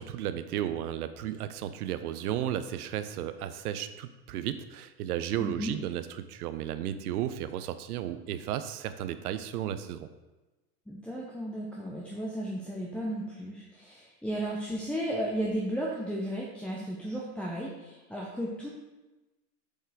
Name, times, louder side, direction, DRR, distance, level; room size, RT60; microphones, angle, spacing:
voice 1, 0.0-10.1, right 11 dB, 65° right, 11 dB, 0.7 m, -34 dB
voice 2, 5.4-5.8 10.9-18.7, right 1 dB, ahead, -5 dB, 0.7 m, -34 dB
7.8 x 4.4 x 3.5 m, 1.1 s
hypercardioid pair, 95°, 48 cm